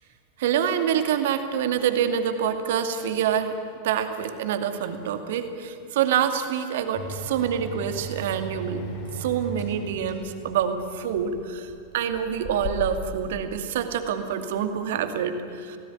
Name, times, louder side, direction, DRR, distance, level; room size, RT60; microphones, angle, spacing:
voice 1, 0.4-3.5 3.8-8.8 9.1-15.8, right 8 dB, 55° right, 8 dB, 2.3 m, -26 dB
sound 1, 6.9-13.2, right 1 dB, 40° left, 7.0 m, -37 dB
28.5 x 18.5 x 9.6 m, 2.7 s
figure-of-eight pair, 90°, 0 cm